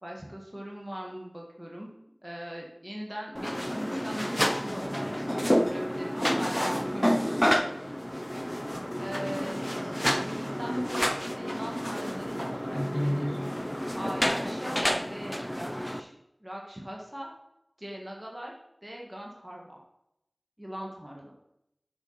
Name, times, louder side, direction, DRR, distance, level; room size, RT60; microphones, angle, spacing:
voice 1, 0.0-1.9 2.2-7.5 9.0-13.4 13.9-16.1 16.4-17.3 17.8-18.5 18.8-19.8 20.6-21.3, equal, 20° right, -1 dB, 1.5 m, -40 dB
sound 1, 3.4-16.0, equal, 15° left, 0.7 m, -29 dB
6.7 x 5.8 x 5.6 m, 0.81 s
wide cardioid pair, 40°, 0 cm